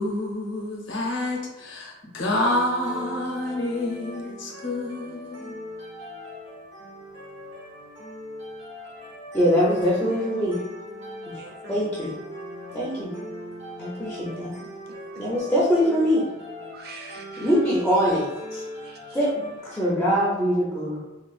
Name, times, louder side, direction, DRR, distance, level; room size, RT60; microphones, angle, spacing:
voice 1, 0.0-5.6, left 1 dB, 80° left, -1 dB, 0.8 m, -28 dB
sound 1, 2.4-19.9, equal, 70° right, 1.2 m, -40 dB
voice 2, 9.3-10.6 11.3-11.4 11.7-12.1 12.7-13.1 13.8-14.5 15.2-16.2 17.4-18.6 19.1-21.0, equal, 5° left, -8 dB, 0.5 m, -23 dB
voice 3, 11.4-11.9 14.9-15.2 16.7-17.5 18.8-19.3, right 4 dB, 50° right, 2 dB, 0.4 m, -45 dB
3.6 x 2.4 x 2.4 m, 1.0 s
head